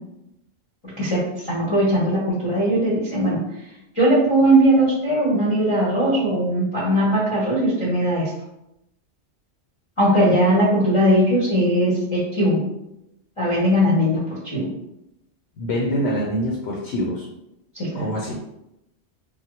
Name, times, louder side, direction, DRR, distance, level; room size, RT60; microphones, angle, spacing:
voice 1, 0.8-3.4 3.9-8.3 10.0-12.6 13.4-14.2 14.4-14.7 17.7-18.1, right 1 dB, 30° left, -7 dB, 0.7 m, -19 dB
voice 2, 15.6-17.3 17.9-18.4, equal, 70° left, -3 dB, 0.9 m, -25 dB
3.4 x 2.2 x 2.9 m, 0.86 s
omnidirectional pair, 1.2 m